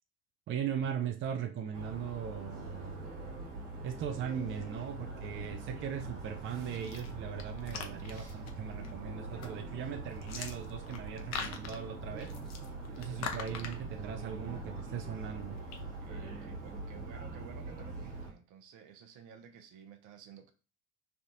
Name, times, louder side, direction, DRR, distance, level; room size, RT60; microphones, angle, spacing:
voice 1, 0.5-3.0 3.8-12.3 13.0-15.6, right 8 dB, 35° right, 7 dB, 0.4 m, -39 dB
sound 1, 1.7-18.3, right 3 dB, 80° right, 1.3 m, -43 dB
sound 2, 6.7-15.8, left 6 dB, 50° left, 0.7 m, -45 dB
voice 2, 16.0-20.5, right 8 dB, 55° right, 7 dB, 0.8 m, -54 dB
3.3 x 2.4 x 2.8 m, 0.35 s
hypercardioid pair, 70°, 35 cm